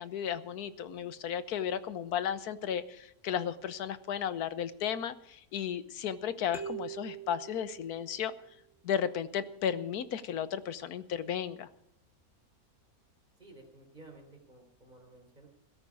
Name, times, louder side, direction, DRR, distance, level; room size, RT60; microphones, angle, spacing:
voice 1, 0.0-8.3 8.8-11.7, left 8 dB, 90° left, 13 dB, 1.4 m, -34 dB
sound 1, 6.5-8.4, right 8 dB, ahead, 2.4 m, -43 dB
voice 2, 13.4-15.5, right 2 dB, 30° right, 2 dB, 4.0 m, -54 dB
16.5 x 13.5 x 4.9 m, 0.76 s
omnidirectional pair, 1.6 m